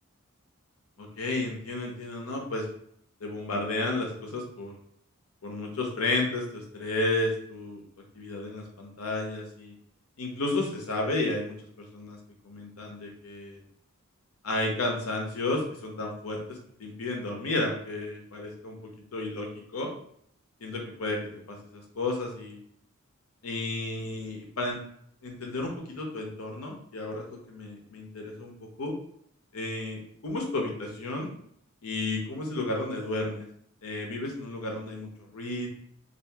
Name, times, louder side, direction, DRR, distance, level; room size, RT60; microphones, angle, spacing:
voice 1, 1.0-2.7 3.2-4.7 5.4-7.8 8.1-9.7 10.2-12.2 12.4-13.6 14.4-19.9 20.6-21.2 21.5-22.6 23.4-24.8 25.2-28.5 28.8-28.9 29.5-31.3 31.8-33.5 33.8-35.7, left 2 dB, 85° left, 1 dB, 0.8 m, -32 dB
2.8 x 2.5 x 3.4 m, 0.66 s
head